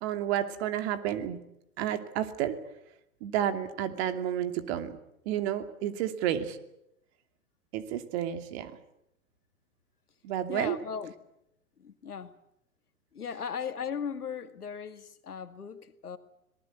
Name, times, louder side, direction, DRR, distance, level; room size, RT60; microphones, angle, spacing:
voice 1, 0.0-1.4 1.8-2.6 3.2-5.0 5.3-6.6 7.7-8.7 10.2-10.8, right 10 dB, 45° right, 2.7 m, -31 dB
voice 2, 10.5-11.1 11.8-12.3 13.1-16.2, left 7 dB, 85° left, 2.2 m, -37 dB
25.5 x 19.5 x 8.3 m
hypercardioid pair, 115°, 44 cm